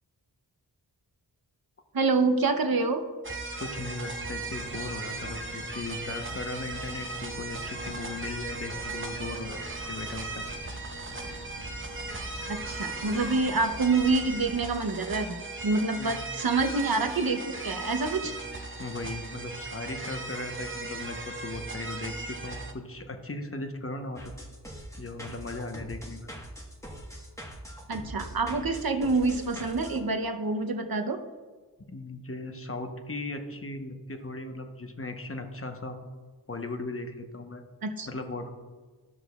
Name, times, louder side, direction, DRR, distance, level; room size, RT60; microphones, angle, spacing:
voice 1, 1.9-3.0 12.5-18.3 27.9-31.2 37.8-38.1, right 3 dB, 60° right, 6 dB, 0.8 m, -27 dB
sound 1, 3.2-22.7, right 3 dB, 30° right, 0.8 m, -37 dB
voice 2, 3.6-9.6 9.9-10.4 15.9-16.2 18.2-18.4 18.8-24.3 25.0-26.3 31.9-36.1 36.5-37.6 38.1-38.6, left 2 dB, 35° left, 5 dB, 0.9 m, -37 dB
sound 2, 4.4-14.5, equal, 60° left, 1.9 m, -46 dB
sound 3, 24.2-30.0, equal, 5° left, 1.2 m, -42 dB
13.5 x 6.1 x 2.3 m, 1.4 s
wide cardioid pair, 55°, 41 cm